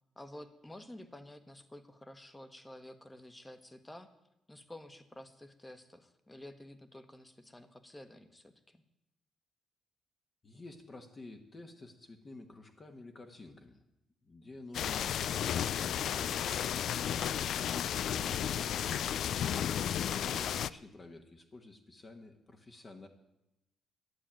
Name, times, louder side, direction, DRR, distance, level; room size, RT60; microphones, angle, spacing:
voice 1, 0.1-4.1 4.5-8.8 19.5-19.9, left 1 dB, 10° left, 11 dB, 1.3 m, -51 dB
voice 2, 10.4-13.8 14.2-16.7 17.4-19.0 20.1-23.1, left 2 dB, 30° left, 4 dB, 1.4 m, -51 dB
sound 1, 14.7-20.7, left 9 dB, 70° left, 0.4 m, -33 dB
11.5 x 8.8 x 9.0 m, 0.90 s
cardioid pair, 90°, 0 cm